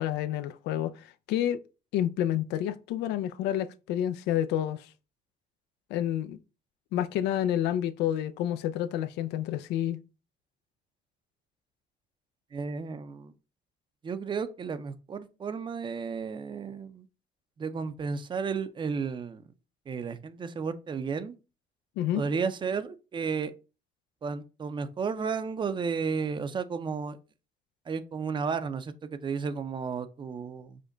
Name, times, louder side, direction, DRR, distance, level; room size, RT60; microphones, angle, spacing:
voice 1, 0.0-1.6 1.9-4.9 5.9-6.4 6.9-10.0 22.0-22.2, left 11 dB, 85° left, 0.4 m, -29 dB
voice 2, 12.5-13.3 14.0-17.1 17.6-19.4 19.9-21.3 22.1-23.5 24.2-27.2 27.9-30.8, right 5 dB, 30° right, 0.5 m, -33 dB
5.0 x 2.2 x 3.8 m
cardioid pair, 110°, 17 cm